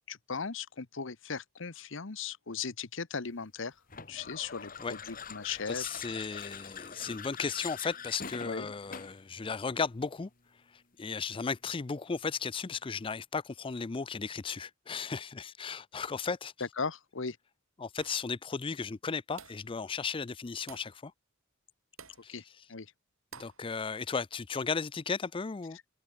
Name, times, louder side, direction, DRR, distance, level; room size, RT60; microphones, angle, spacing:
voice 1, 0.1-3.8 4.1-6.4 7.0-7.2 8.4-8.7 16.6-17.4 22.3-22.4 22.7-22.9, left 5 dB, 65° left, 1.0 m, -38 dB
sound 1, 3.9-9.3, left 6 dB, 45° left, 3.3 m, -44 dB
voice 2, 5.7-10.3 11.0-16.5 17.8-21.1 22.2-22.3 23.3-25.8, left 5 dB, 25° left, 0.4 m, -35 dB
sound 2, 18.0-18.3 19.4-19.7 20.7-21.0 22.0-22.3 23.3-23.6, right 6 dB, 90° right, 4.8 m, -50 dB
head